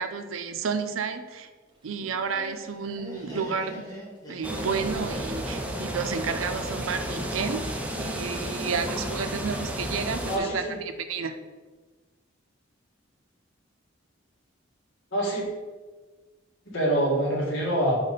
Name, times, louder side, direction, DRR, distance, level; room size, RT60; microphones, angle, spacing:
voice 1, 0.0-1.5 1.8-3.9 4.3-10.6 11.1-11.4, right 5 dB, 90° right, 9 dB, 0.5 m, -31 dB
sound 1, 1.7-7.3, equal, 25° right, 1.1 m, -46 dB
Laughter, 2.0-7.0, left 1 dB, 20° left, 1.6 m, -43 dB
sound 2, 4.4-10.4, equal, 5° right, 0.5 m, -32 dB
voice 2, 10.3-10.8 15.1-15.5 16.7-18.0, right 1 dB, 75° left, -3 dB, 1.9 m, -25 dB
5.2 x 4.6 x 4.1 m, 1.3 s
head